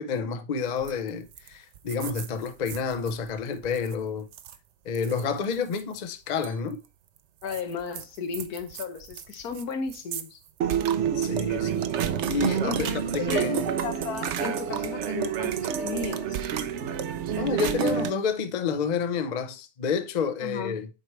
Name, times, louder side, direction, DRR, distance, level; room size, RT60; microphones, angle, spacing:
voice 1, 0.0-4.3 4.8-6.8 11.1-13.7 17.4-20.9, left 5 dB, 45° left, 0.5 m, -29 dB
sound 1, 0.8-1.1 1.4-1.5 1.7-3.1 3.6-3.9 4.3-4.5 4.9-5.8 6.4-6.5 7.5-9.6 9.9-10.2 10.6-18.1, right 8 dB, 60° right, 0.8 m, -29 dB
voice 2, 7.4-10.4 12.6-16.4 20.4-20.8, left 5 dB, 80° left, 1.4 m, -34 dB
7.8 x 4.6 x 3.2 m
omnidirectional pair, 1.6 m